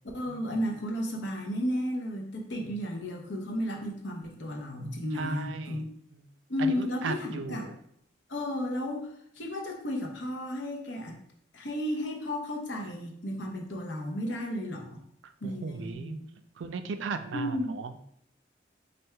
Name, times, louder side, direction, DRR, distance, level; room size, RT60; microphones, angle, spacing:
voice 1, 0.1-5.8 6.5-7.7 8.3-11.2 11.5-15.0 15.4-16.3 17.3-17.7, left 1 dB, 80° left, 1 dB, 0.9 m, -33 dB
voice 2, 5.1-5.8 6.1-6.2 6.6-7.7 15.2-16.2 16.6-18.0, right 4 dB, 85° right, 8 dB, 0.4 m, -36 dB
3.3 x 2.6 x 4.4 m, 0.71 s
head